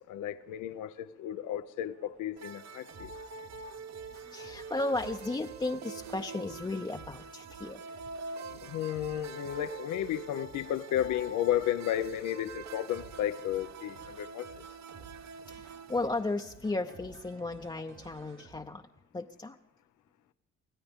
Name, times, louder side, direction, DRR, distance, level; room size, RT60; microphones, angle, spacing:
voice 1, 0.1-3.1 8.6-14.6, left 11 dB, 85° left, 0.6 m, -33 dB
sound 1, 1.9-18.6, right 5 dB, 80° right, 3.6 m, -55 dB
sound 2, 2.4-16.1, right 4 dB, 65° right, 0.9 m, -45 dB
voice 2, 4.3-7.8 15.5-18.8 19.1-19.6, left 2 dB, 15° left, 0.6 m, -35 dB
24.5 x 16.0 x 3.6 m
cardioid pair, 90°, 30 cm